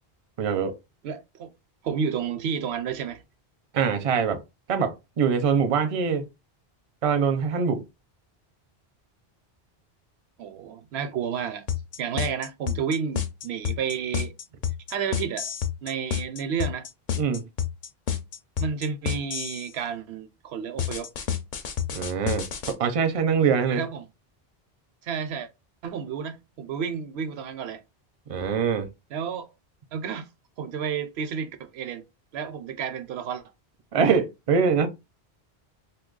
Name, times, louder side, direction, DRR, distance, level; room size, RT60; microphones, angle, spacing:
voice 1, 0.4-0.8 3.7-4.4 4.7-6.3 7.0-7.9 17.2-17.5 21.9-23.8 28.3-28.9 33.9-34.9, right 6 dB, 45° right, 0.5 m, -23 dB
voice 2, 1.0-1.5 1.8-3.2 10.4-11.7 12.0-14.3 14.9-15.5 15.8-16.9 18.6-21.1 23.7-24.1 25.0-25.5 25.8-27.8 29.1-29.5 29.9-30.3 30.6-32.0 32.3-33.4, right 7 dB, 85° right, 0.8 m, -31 dB
sound 1, 11.7-19.7 20.8-22.7, left 8 dB, 55° left, 0.7 m, -29 dB
2.8 x 2.2 x 3.7 m
omnidirectional pair, 1.0 m